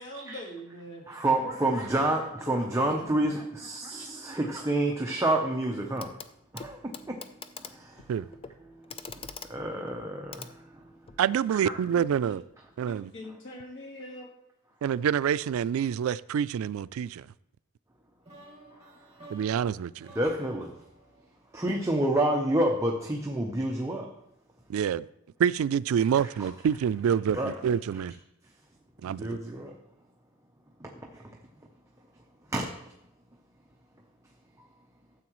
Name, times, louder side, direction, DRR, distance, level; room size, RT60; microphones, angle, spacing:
voice 1, 0.0-1.1 1.4-1.7 2.4-3.1 11.9-12.4 12.8-14.3, left 1 dB, 65° left, 1.7 m, -43 dB
voice 2, 1.1-6.2 6.5-11.2 11.5-11.8 18.7-19.3 20.1-20.8 21.5-24.1 26.1-26.5 27.3-27.5 27.9-28.0 29.0-29.8 30.8-31.4 32.5-32.9 34.6-34.7, right 1 dB, 15° right, 0.8 m, -30 dB
Clock, 6.0-6.3 6.6-11.3 12.5-12.6, left 5 dB, 25° left, 0.5 m, -45 dB
voice 3, 11.2-12.4 12.8-13.1 14.8-17.3 19.3-20.1 24.7-25.1 25.4-28.1 29.0-29.4, right 8 dB, 85° right, 0.3 m, -27 dB
sound 1, 18.2-22.2, right 1 dB, 30° right, 2.5 m, -53 dB
13.5 x 7.7 x 3.1 m
head